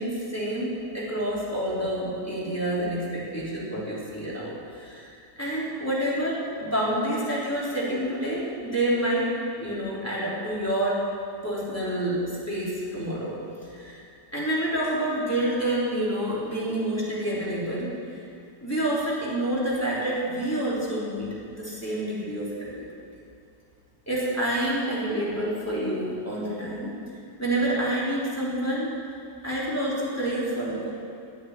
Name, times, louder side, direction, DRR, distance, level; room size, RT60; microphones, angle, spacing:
voice 1, 0.0-11.0 11.4-13.4 13.7-14.0 14.3-17.9 18.6-22.9 24.1-26.9 27.4-28.9 29.4-30.9, right 1 dB, 10° left, -8 dB, 3.9 m, -28 dB
10.0 x 9.5 x 9.9 m, 2.5 s
omnidirectional pair, 1.8 m